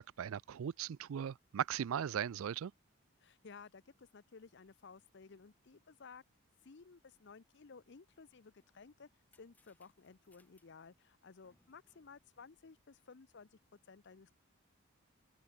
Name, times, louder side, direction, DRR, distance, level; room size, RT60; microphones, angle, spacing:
voice 1, 0.0-2.7, right 9 dB, 70° right, 0.4 m, -38 dB
voice 2, 3.2-6.2 6.6-9.1 9.4-13.6 13.9-14.4, left 5 dB, 55° left, 0.6 m, -56 dB
sound 1, 8.5-13.3, left 2 dB, 5° left, 4.2 m, -76 dB
open air
head